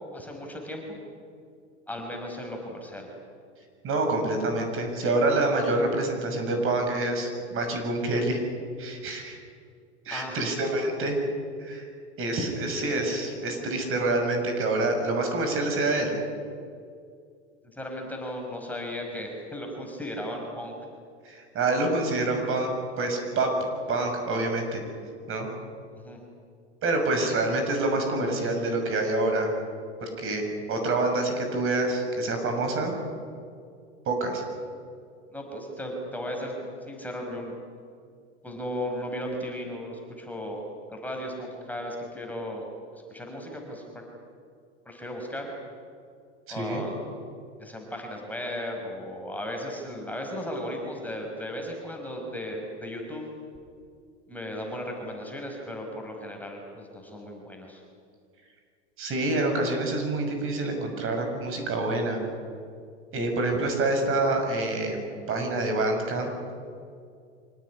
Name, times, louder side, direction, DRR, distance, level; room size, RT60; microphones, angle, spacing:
voice 1, 0.1-1.0 1.9-3.1 10.1-10.4 17.7-20.7 25.9-26.2 35.3-37.6 38.4-40.6 40.9-42.7 42.9-44.0 44.9-45.5 46.5-47.2 47.6-53.3 54.3-57.8, equal, 5° left, 1 dB, 5.4 m, -36 dB
voice 2, 3.8-8.4 8.8-9.4 10.0-11.2 11.6-11.9 12.2-16.1 21.2-22.7 23.0-23.5 23.9-24.8 25.3-25.5 26.8-29.5 30.0-30.4 30.7-33.0 34.1-34.4 46.6-46.8 59.0-62.2 63.1-66.3, right 2 dB, 35° right, 4 dB, 6.5 m, -27 dB
25.5 x 18.0 x 9.9 m, 2.3 s
hypercardioid pair, 100°, 35 cm